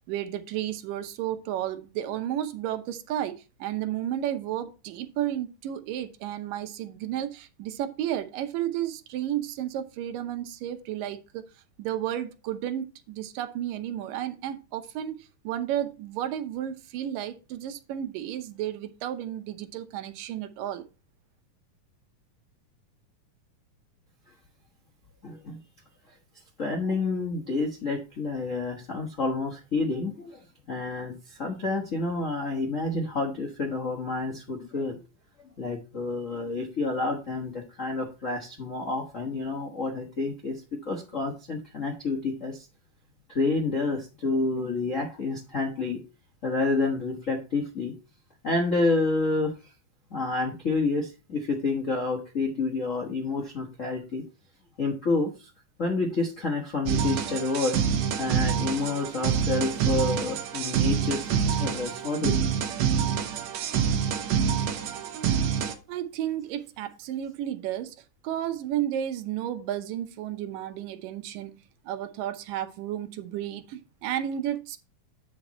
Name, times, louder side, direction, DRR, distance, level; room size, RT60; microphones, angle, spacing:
voice 1, 0.1-3.3 3.6-11.4 11.8-15.2 15.4-20.8 65.6-67.9 68.2-71.6 71.9-74.8, right 11 dB, 85° right, 9 dB, 2.5 m, -32 dB
voice 2, 25.2-25.6 26.6-30.4 30.7-35.0 35.6-42.6 43.3-46.0 46.4-47.9 48.4-49.5 50.1-54.2 54.8-55.5 55.8-57.8 58.2-62.6, left 3 dB, 80° left, -1 dB, 0.7 m, -29 dB
sound 1, 56.9-65.7, right 8 dB, 65° right, 2.0 m, -26 dB
8.9 x 5.2 x 4.2 m, 0.31 s
omnidirectional pair, 3.8 m